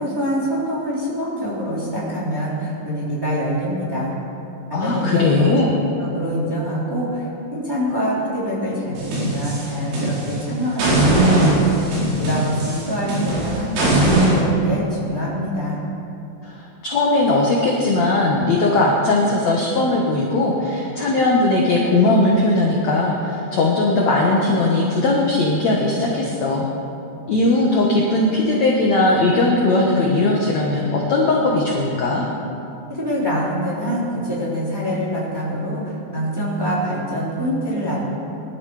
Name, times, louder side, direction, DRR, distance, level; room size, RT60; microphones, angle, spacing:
voice 1, 0.0-4.1 4.7-5.7 6.0-11.6 12.2-15.8 32.9-38.0, equal, 5° right, -7 dB, 3.0 m, -25 dB
voice 2, 4.7-5.7 16.4-26.7 27.3-32.2, left 2 dB, 70° left, -2 dB, 1.7 m, -19 dB
sound 1, 9.0-10.4 10.8-14.3, right 1 dB, 80° right, 6.4 m, -19 dB
21.5 x 12.0 x 4.9 m, 2.7 s
omnidirectional pair, 5.3 m